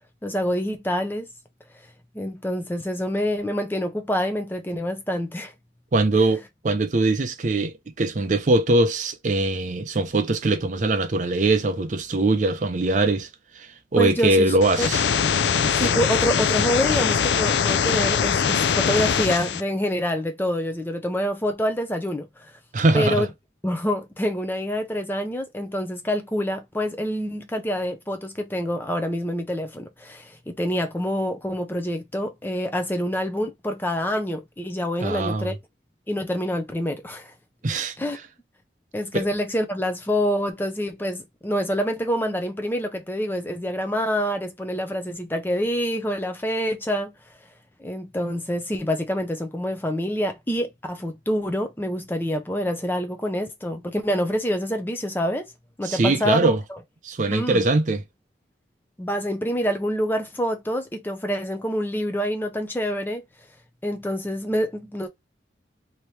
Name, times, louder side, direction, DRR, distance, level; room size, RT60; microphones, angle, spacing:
voice 1, 0.2-1.3 2.1-5.5 6.2-6.3 13.9-14.9 15.8-22.5 22.9-23.3 23.6-35.5 36.1-37.3 38.0-38.2 38.9-47.1 47.8-55.5 55.8-56.8 57.3-57.7 59.0-63.2 63.8-65.1, equal, 10° left, 0.5 m, -26 dB
voice 2, 5.9-13.3 13.6-15.1 22.7-23.3 35.0-35.5 37.6-38.0 39.1-39.3 55.8-56.6 57.0-58.0, right 2 dB, 45° right, 0.5 m, -22 dB
sound 1, 14.6-19.6, left 7 dB, 70° left, 0.4 m, -22 dB
3.0 x 2.8 x 3.2 m
head